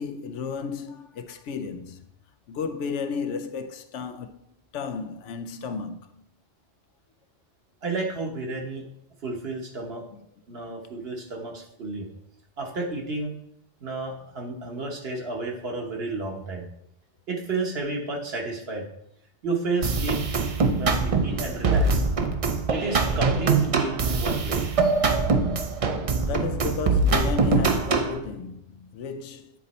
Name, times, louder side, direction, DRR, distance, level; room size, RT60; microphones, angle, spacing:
voice 1, 0.0-2.1 2.5-4.4 4.7-6.1 10.1-10.2 26.2-29.5, left 5 dB, 85° left, 0.9 m, -33 dB
voice 2, 7.8-8.8 9.2-10.0 10.5-12.1 12.6-13.3 13.8-16.7 17.3-18.9 19.4-20.2 20.8-22.0 22.7-24.7, right 3 dB, 60° right, 1.3 m, -31 dB
sound 1, 19.8-28.2, right 4 dB, 45° right, 0.5 m, -23 dB
8.9 x 4.0 x 4.1 m
omnidirectional pair, 1.2 m